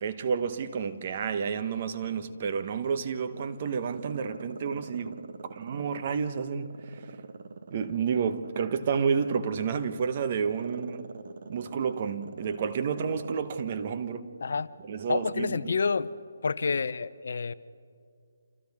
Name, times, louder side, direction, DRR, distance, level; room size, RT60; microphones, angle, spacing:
voice 1, 0.0-6.9 7.7-11.2 11.5-14.3 14.9-15.6, right 6 dB, 40° right, 1.1 m, -30 dB
Growling, 1.0-2.8 3.2-6.2 6.7-13.5 13.8-13.9, right 5 dB, 60° right, 1.5 m, -44 dB
voice 2, 14.4-14.7 15.1-16.1 16.4-17.5, left 5 dB, 65° left, 0.6 m, -28 dB
29.5 x 27.5 x 3.6 m
hypercardioid pair, 160°, 0 cm